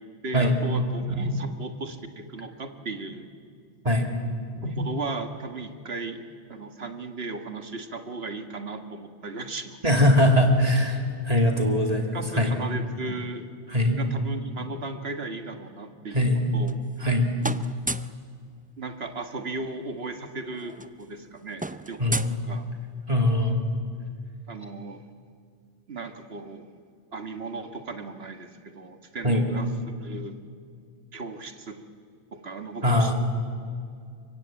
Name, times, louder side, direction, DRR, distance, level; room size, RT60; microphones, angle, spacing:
voice 1, 0.2-3.3 4.6-6.2 6.5-9.8 11.5-11.8 12.1-13.4 13.9-16.7 18.8-22.2 22.5-22.7 24.5-25.0 25.9-26.7 27.1-30.4 31.1-31.8 32.3-33.1, right 3 dB, 75° right, 7 dB, 1.8 m, -35 dB
voice 2, 9.8-11.0 11.2-12.5 13.7-14.0 16.1-16.4 17.0-17.3 22.0-22.3 23.1-23.7 29.2-29.5 32.8-33.1, left 1 dB, 35° right, 3 dB, 2.7 m, -21 dB
sound 1, 16.4-17.1 17.4-18.2 19.6-19.7 19.9-20.1 20.4-23.1, right 2 dB, 15° right, 0.4 m, -35 dB
24.5 x 23.5 x 8.8 m, 2.2 s
omnidirectional pair, 1.0 m